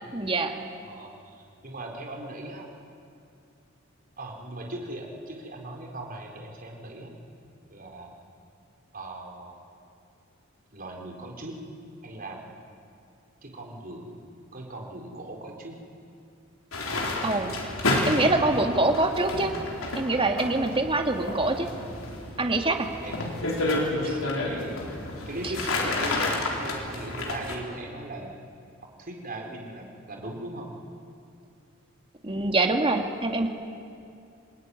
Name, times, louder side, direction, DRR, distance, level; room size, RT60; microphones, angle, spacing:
voice 1, 0.1-0.5 17.2-17.5 18.1-19.5 19.9-21.7 22.4-22.9 32.2-33.5, right 2 dB, 25° right, 4 dB, 2.1 m, -24 dB
voice 2, 0.8-2.7 4.2-7.1 7.7-8.1 8.9-9.6 10.7-11.6 12.0-12.4 13.4-14.2 14.5-15.8 22.6-23.2 23.6-24.8 25.3-28.3 29.0-30.7, right 1 dB, 45° right, 1 dB, 4.3 m, -39 dB
sound 1, 16.7-27.6, left 2 dB, 85° left, 4.2 m, -30 dB
28.0 x 20.5 x 9.8 m, 2.5 s
head